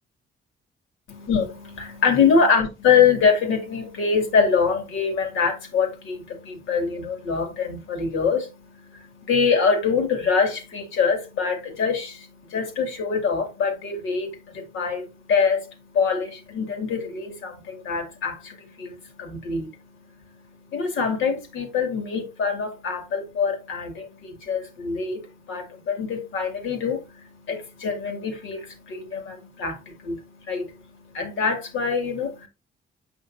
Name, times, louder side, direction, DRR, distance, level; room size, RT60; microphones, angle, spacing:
voice 1, 1.1-32.5, left 5 dB, 80° left, 2.3 m, -25 dB
7.3 x 6.0 x 2.6 m
cardioid pair, 90°, 20 cm